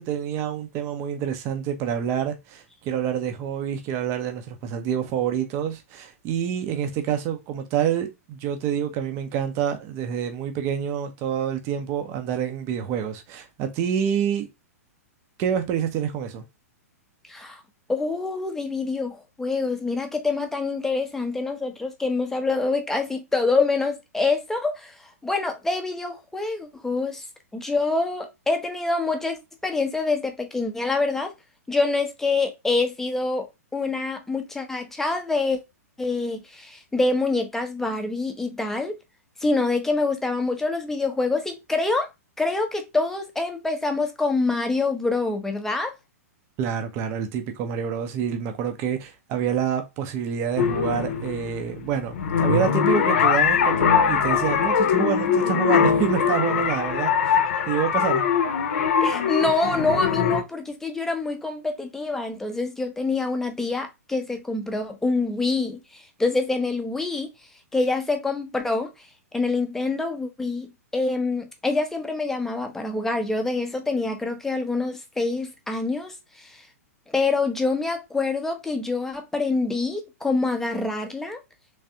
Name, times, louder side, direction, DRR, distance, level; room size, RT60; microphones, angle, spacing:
voice 1, 0.0-14.5 15.4-16.4 46.6-57.4 57.7-58.2, right 8 dB, 30° right, 0.6 m, -27 dB
voice 2, 17.3-17.6 17.9-25.0 25.2-27.2 27.5-31.3 31.7-35.6 36.0-39.0 39.4-42.1 42.4-45.9 59.0-67.3 67.7-68.9 69.3-76.6 77.1-81.4, left 3 dB, 5° left, 0.6 m, -26 dB
sound 1, 50.6-60.4, left 7 dB, 55° left, 0.7 m, -22 dB
3.4 x 3.2 x 2.7 m
figure-of-eight pair, 105°, 8 cm